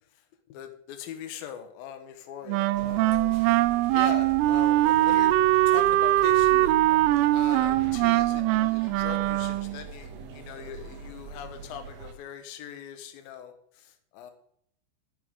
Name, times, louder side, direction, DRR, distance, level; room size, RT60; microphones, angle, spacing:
voice 1, 0.5-3.5 3.9-5.3 5.7-6.8 7.3-14.3, left 8 dB, 65° left, 7 dB, 2.5 m, -41 dB
Wind instrument woodwind instrument, 2.5-9.8, right 16 dB, 90° right, 3.2 m, -22 dB
sound 1, 2.7-12.1, right 4 dB, 70° right, 2.5 m, -42 dB
14.0 x 10.5 x 3.8 m, 0.66 s
omnidirectional pair, 5.7 m